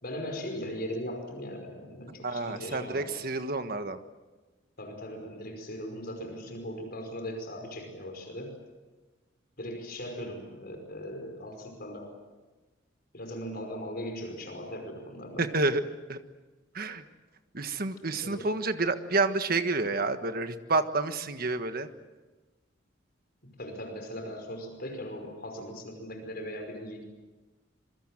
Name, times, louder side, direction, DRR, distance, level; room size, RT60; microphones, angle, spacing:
voice 1, 0.0-3.1 4.8-8.5 9.6-12.1 13.1-15.5 18.1-18.5 23.6-27.0, equal, 50° left, 4 dB, 5.3 m, -39 dB
voice 2, 2.2-4.0 15.4-15.8 16.1-16.2 16.7-17.0 17.5-21.9, right 3 dB, 50° right, 9 dB, 1.5 m, -29 dB
26.5 x 23.5 x 7.6 m, 1.2 s
head